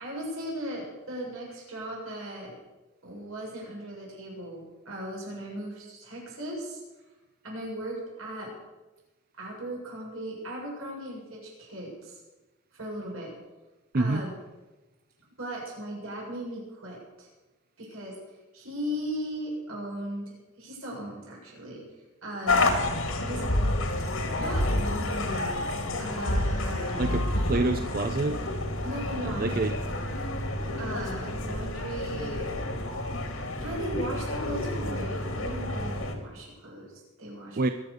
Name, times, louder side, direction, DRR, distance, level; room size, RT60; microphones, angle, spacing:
voice 1, 0.0-2.6 3.0-6.8 7.4-8.5 9.3-12.2 12.7-13.3 13.9-14.3 15.4-17.3 17.8-18.2 18.5-21.8 22.2-22.8 23.2-23.9 24.4-27.2 28.8-29.9 30.8-32.5 33.6-37.7, right 1 dB, 85° right, -2 dB, 7.0 m, -37 dB
voice 2, 13.9-14.2 27.0-28.4 29.2-29.7 37.6-37.7, right 2 dB, 45° right, 8 dB, 0.6 m, -27 dB
sound 1, 22.5-36.1, left 1 dB, 75° left, 2.3 m, -29 dB
21.5 x 8.4 x 6.8 m, 1.1 s
head